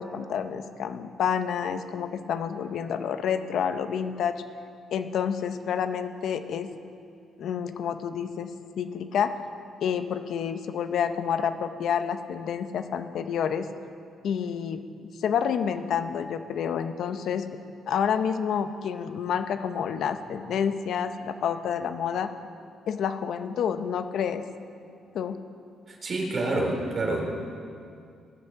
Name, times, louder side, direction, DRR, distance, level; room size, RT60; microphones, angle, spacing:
voice 1, 0.0-4.4 4.9-6.7 7.4-8.5 8.8-9.4 9.8-13.7 14.2-14.8 15.2-17.5 17.9-22.3 22.9-24.4 25.1-25.4, left 7 dB, 70° left, 9 dB, 0.7 m, -29 dB
voice 2, 25.9-27.3, right 2 dB, 40° right, 0 dB, 3.0 m, -28 dB
18.5 x 6.3 x 6.9 m, 2.4 s
cardioid pair, 90°, 0 cm